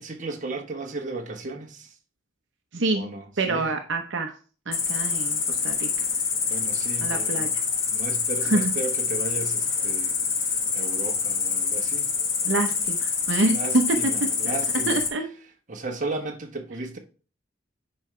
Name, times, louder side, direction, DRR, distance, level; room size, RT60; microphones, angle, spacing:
voice 1, 0.0-1.9 2.9-3.8 6.5-7.6 7.9-12.1 13.5-15.0 15.7-17.0, right 3 dB, 40° right, 1.1 m, -35 dB
voice 2, 2.7-3.1 3.4-4.3 4.7-6.1 7.0-7.5 8.4-8.6 12.4-13.8 14.4-14.6 14.9-15.3, right 2 dB, 65° right, 0.8 m, -26 dB
Cricket, 4.7-15.1, left 5 dB, 75° left, 1.4 m, -26 dB
9.7 x 4.8 x 3.2 m
head